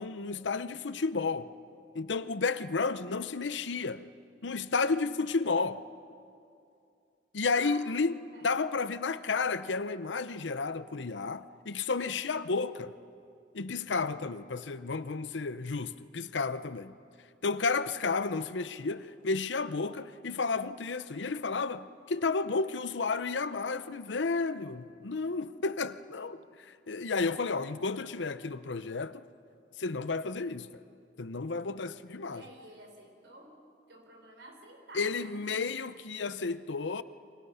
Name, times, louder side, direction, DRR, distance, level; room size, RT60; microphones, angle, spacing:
voice 1, 0.0-1.5 1.9-4.1 4.4-5.8 7.3-8.2 8.4-12.9 13.5-17.0 17.4-29.2 29.8-30.7 31.2-32.4 34.9-37.0, left 4 dB, 85° left, 0.8 m, -32 dB
voice 2, 7.6-8.0 8.3-8.6 32.3-33.6 33.9-35.4, right 1 dB, 70° right, 4.4 m, -51 dB
29.5 x 25.5 x 5.7 m
head